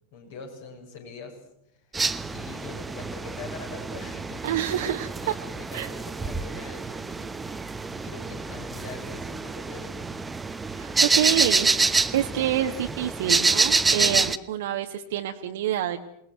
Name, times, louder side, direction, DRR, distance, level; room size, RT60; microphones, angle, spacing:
voice 1, 0.1-1.4 1.7-2.0 2.3-4.5 5.2-7.4 7.9-10.0, left 5 dB, 55° left, 3 dB, 6.6 m, -43 dB
sound 1, 1.9-14.4, right 4 dB, 10° right, 1.1 m, -27 dB
voice 2, 4.4-5.3 5.7-5.9 10.7-16.0, right 11 dB, 55° right, 4 dB, 1.3 m, -27 dB
28.5 x 19.5 x 8.0 m, 0.80 s
figure-of-eight pair, 90°, 0 cm